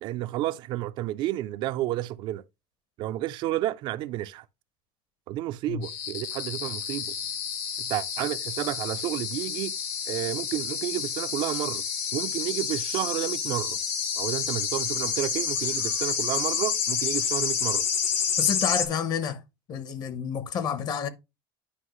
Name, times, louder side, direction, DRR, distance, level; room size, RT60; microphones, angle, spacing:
voice 1, 0.0-2.4 3.0-4.4 5.3-7.1 7.8-9.7 10.1-11.8 12.1-13.8 14.2-17.9, right 14 dB, 45° right, 0.4 m, -31 dB
sound 1, 5.8-18.8, left 7 dB, 85° left, 2.3 m, -29 dB
voice 2, 18.4-19.4 19.7-21.1, left 7 dB, 35° left, 0.8 m, -29 dB
9.9 x 5.4 x 3.0 m
cardioid pair, 170°, 11 cm